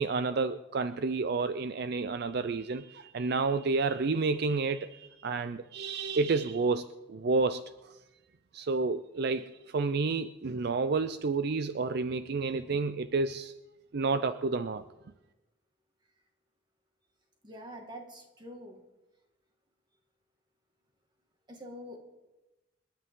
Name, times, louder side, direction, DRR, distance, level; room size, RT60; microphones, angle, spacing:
voice 1, 0.0-8.0 8.5-13.5 13.9-14.8, right 4 dB, 55° right, 11 dB, 0.5 m, -30 dB
voice 2, 17.4-18.8 21.5-22.0, equal, 25° right, 2 dB, 2.1 m, -45 dB
28.5 x 10.0 x 3.8 m, 1.1 s
head